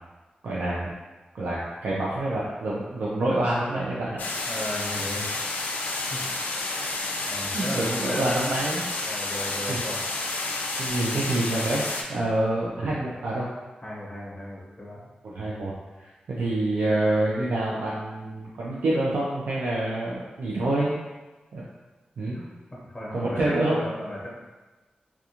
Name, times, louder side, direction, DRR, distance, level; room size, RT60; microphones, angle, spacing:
voice 1, 0.4-0.9 1.3-4.2 7.5-8.8 9.7-9.8 10.8-13.5 15.2-15.7 16.0-20.9 21.5-21.6 22.2-22.4 23.1-23.9, right 1 dB, 80° right, -6 dB, 0.4 m, -27 dB
sound 1, 4.2-12.0, left 2 dB, 85° left, 0.3 m, -30 dB
voice 2, 4.4-5.3 6.1-6.3 7.3-8.4 9.0-10.0 13.8-15.0 22.3-22.4 22.7-24.3, left 1 dB, 15° left, -7 dB, 0.9 m, -36 dB
2.4 x 2.3 x 2.8 m, 1.2 s
wide cardioid pair, 150°, 3 cm